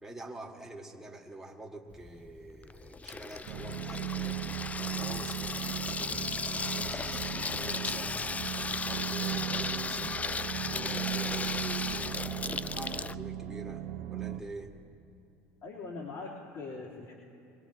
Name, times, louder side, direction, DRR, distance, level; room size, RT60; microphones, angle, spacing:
voice 1, 0.0-4.4 4.8-6.3 6.6-8.2 8.6-10.2 10.7-14.7, right 2 dB, 5° right, -1 dB, 2.0 m, -46 dB
Water tap faucet / Sink (filling or washing), 1.9-13.2, left 4 dB, 20° left, 0.4 m, -36 dB
sound 1, 3.5-14.4, right 11 dB, 70° right, 1.0 m, -37 dB
voice 2, 15.6-17.1, left 3 dB, 55° left, -6 dB, 3.5 m, -41 dB
23.0 x 20.5 x 3.0 m, 2.7 s
hypercardioid pair, 75°, 7 cm